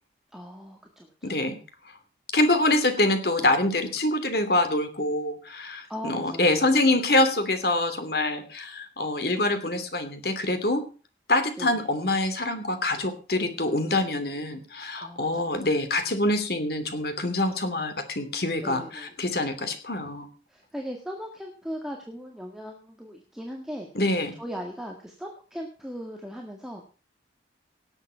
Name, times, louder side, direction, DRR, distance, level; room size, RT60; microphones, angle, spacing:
voice 1, 0.3-1.4 5.9-7.0 11.6-11.9 15.0-15.5 18.6-19.1 20.5-26.8, equal, 5° right, 0 dB, 1.7 m, -39 dB
voice 2, 1.2-1.6 2.3-10.8 11.3-20.3 23.9-24.3, left 2 dB, 55° left, 8 dB, 2.7 m, -25 dB
18.0 x 8.1 x 5.6 m, 0.37 s
head